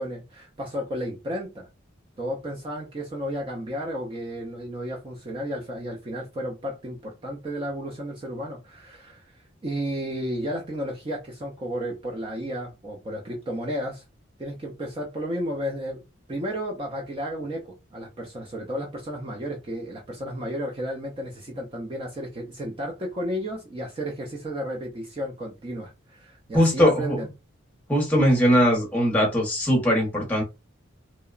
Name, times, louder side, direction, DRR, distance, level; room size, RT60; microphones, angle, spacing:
voice 1, 0.0-1.7 2.2-14.0 14.4-27.3, equal, 25° right, 0.4 m, -33 dB
voice 2, 26.5-27.2 27.9-30.4, equal, 10° left, 0.7 m, -20 dB
2.8 x 2.0 x 2.3 m
head